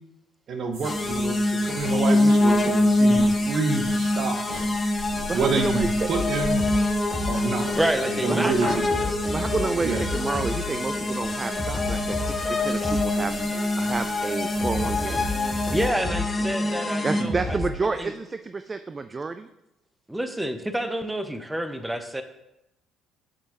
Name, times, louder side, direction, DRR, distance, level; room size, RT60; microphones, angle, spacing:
voice 1, 0.5-1.4 1.6-4.7 5.3-6.6 7.3-7.7 8.0-8.9 9.8-10.0, right 4 dB, 50° right, 6 dB, 1.0 m, -28 dB
sound 1, 0.7-15.9, right 1 dB, 70° right, 2.2 m, -39 dB
sound 2, 0.8-17.2, left 2 dB, 30° left, 0.8 m, -25 dB
voice 2, 5.3-6.2 8.3-8.5 9.3-13.3 13.8-15.3 17.0-19.5, right 4 dB, 30° right, 10 dB, 0.4 m, -30 dB
sound 3, 6.1-17.9, left 1 dB, 10° left, 2.6 m, -34 dB
voice 3, 7.8-9.2 11.1-11.2 15.7-17.6 17.9-18.1 20.1-22.2, right 1 dB, 10° right, 9 dB, 0.7 m, -28 dB
7.7 x 6.3 x 3.0 m, 0.87 s
figure-of-eight pair, 50°, 0 cm